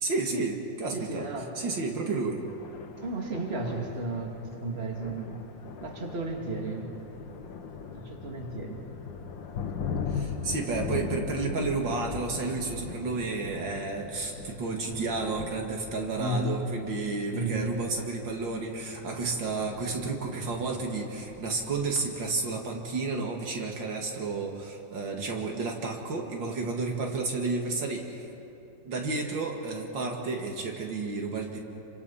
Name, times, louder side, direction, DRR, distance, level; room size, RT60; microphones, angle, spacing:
voice 1, 0.0-1.3 1.6-2.4 10.1-28.3 28.9-31.6, right 3 dB, 80° right, 1 dB, 2.8 m, -31 dB
voice 2, 0.9-1.6 3.0-5.4 5.8-6.9 7.9-8.8 16.2-16.7 17.3-17.8, right 1 dB, 35° right, 0 dB, 2.7 m, -33 dB
Thunder, 2.4-22.1, left 6 dB, 80° left, 2.1 m, -40 dB
28.5 x 25.0 x 5.7 m, 2.9 s
omnidirectional pair, 2.0 m